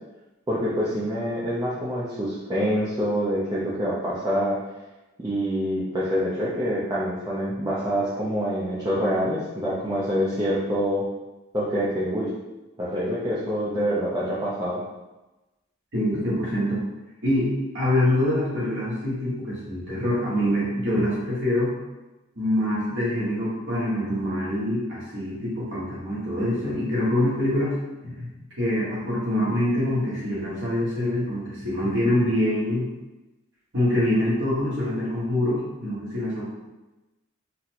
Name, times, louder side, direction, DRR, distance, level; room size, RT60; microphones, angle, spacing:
voice 1, 0.5-4.6 5.2-11.0 11.5-12.3 12.8-14.8, equal, 20° right, -9 dB, 0.5 m, -26 dB
voice 2, 15.9-16.8 17.2-17.5 17.7-21.7 22.3-27.8 28.0-28.3 28.6-32.8 33.7-36.5, left 1 dB, 60° right, -8 dB, 1.3 m, -25 dB
4.0 x 2.1 x 2.9 m, 1.1 s
head